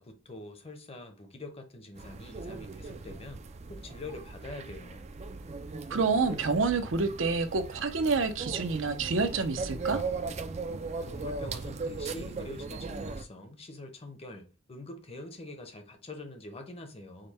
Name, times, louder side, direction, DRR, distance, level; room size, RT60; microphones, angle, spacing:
voice 1, 0.0-3.4 3.7-5.1 11.0-17.3, left 2 dB, 30° left, 0.8 m, -45 dB
sound 1, 1.9-13.2, right 4 dB, 35° right, 0.4 m, -38 dB
voice 2, 5.9-10.0, right 4 dB, 75° right, 0.6 m, -28 dB
5.1 x 2.2 x 4.1 m
head